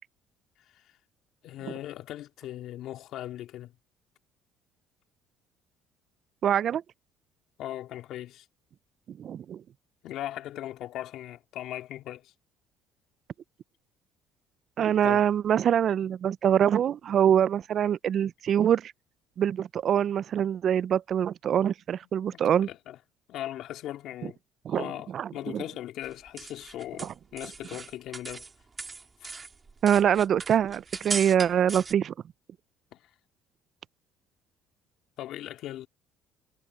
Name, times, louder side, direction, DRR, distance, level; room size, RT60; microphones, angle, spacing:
voice 1, 1.4-3.7 7.6-8.5 10.0-12.3 15.0-15.3 22.3-23.0 23.3-24.4 24.7-28.5 29.2-29.3 32.9-33.1 35.2-35.9, left 13 dB, 70° left, 2.5 m, -39 dB
voice 2, 6.4-6.8 9.1-9.6 14.8-18.9 19.4-22.7 24.7-24.9 25.1-25.6 29.8-32.1, right 9 dB, 50° right, 0.4 m, -24 dB
sound 1, 26.0-28.5 28.8-31.9, right 4 dB, 25° right, 2.5 m, -38 dB
supercardioid pair, 95°, 0 cm